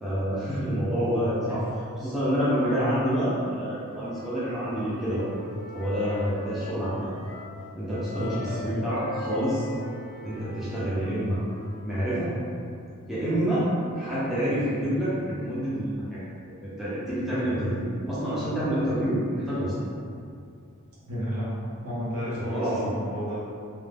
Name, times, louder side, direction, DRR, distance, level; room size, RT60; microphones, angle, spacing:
voice 1, 0.0-1.6 2.0-5.2 5.7-7.1 7.7-9.7 10.2-11.4 11.8-12.4 13.1-13.7 13.9-16.2 16.6-19.7 22.3-22.9, equal, ahead, -12 dB, 0.5 m, -27 dB
Wind instrument woodwind instrument, 3.8-7.6 7.8-11.8, left 1 dB, 25° left, 0.9 m, -42 dB
voice 2, 8.2-8.8 21.0-23.4, equal, 65° right, -9 dB, 0.7 m, -32 dB
2.5 x 2.1 x 3.3 m, 2.5 s
head